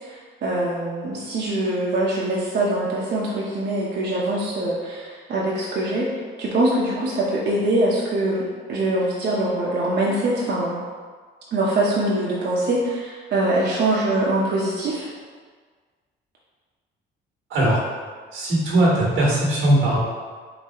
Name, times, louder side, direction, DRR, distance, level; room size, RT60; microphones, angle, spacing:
voice 1, 0.0-6.1 6.4-8.4 8.7-10.8 11.5-15.1, right 1 dB, 60° right, -6 dB, 0.8 m, -23 dB
voice 2, 18.3-20.0, right 1 dB, 90° right, -5 dB, 1.5 m, -19 dB
3.9 x 2.6 x 4.2 m, 1.5 s
cardioid pair, 90°, 20 cm